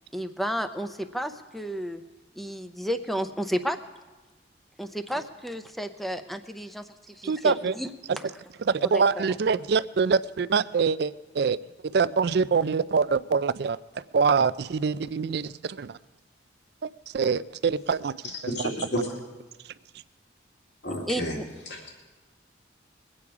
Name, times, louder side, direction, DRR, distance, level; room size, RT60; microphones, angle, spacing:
voice 1, 0.1-2.0 2.3-3.8 4.8-6.9 7.2-7.9 8.9-9.3 21.1-21.5, equal, ahead, 8 dB, 0.6 m, -32 dB
voice 2, 7.2-7.8 8.1-8.2 8.6-11.6 11.9-16.0 16.8-19.0 19.6-19.7, right 5 dB, 60° right, 16 dB, 0.4 m, -25 dB
voice 3, 18.6-19.0 20.8-21.4 21.7-21.9, equal, 65° left, -1 dB, 2.2 m, -31 dB
22.0 x 8.7 x 4.8 m, 1.2 s
head